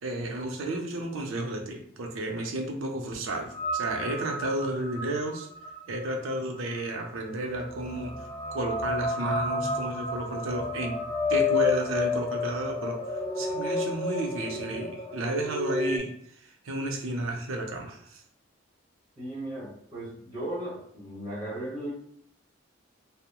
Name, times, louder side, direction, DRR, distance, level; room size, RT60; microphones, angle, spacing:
voice 1, 0.0-5.5 5.9-11.0 11.3-16.1 16.4-18.2, right 1 dB, 90° right, 2 dB, 0.5 m, -32 dB
sound 1, 3.5-16.0, left 3 dB, 20° left, 0.4 m, -31 dB
voice 2, 19.2-21.9, right 1 dB, 20° right, -7 dB, 1.0 m, -36 dB
2.9 x 2.0 x 2.2 m, 0.67 s
head